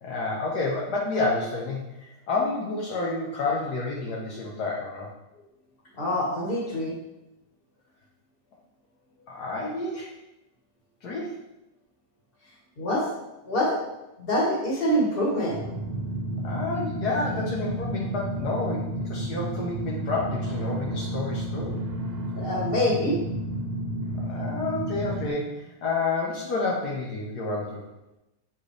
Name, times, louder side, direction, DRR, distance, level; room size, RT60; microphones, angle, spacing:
voice 1, 0.0-5.1 9.3-10.1 11.0-11.3 16.4-21.8 24.2-27.9, left 3 dB, 70° left, -3 dB, 1.5 m, -29 dB
voice 2, 6.0-6.9 12.8-13.1 13.5-13.8 14.2-15.6 22.4-23.2, equal, 35° left, -4 dB, 2.0 m, -25 dB
sound 1, 15.5-25.3, equal, 55° right, 0.7 m, -31 dB
7.9 x 4.5 x 3.3 m, 0.93 s
omnidirectional pair, 1.8 m